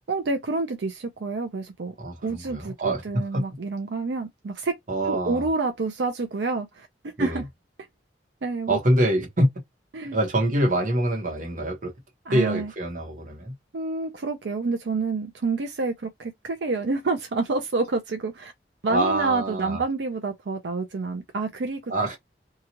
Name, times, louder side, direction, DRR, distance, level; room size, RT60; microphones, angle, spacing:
voice 1, 0.1-1.9 2.2-4.8 5.0-7.4 8.4-8.8 9.9-10.2 12.3-12.7 13.7-18.5 18.8-21.9, right 3 dB, 75° right, 0.5 m, -28 dB
voice 2, 2.0-3.4 4.9-5.5 7.2-7.4 8.7-9.5 10.1-11.9 12.3-13.5 18.9-19.8 21.9-22.2, right 1 dB, 45° right, 1.0 m, -25 dB
2.8 x 2.3 x 2.8 m
head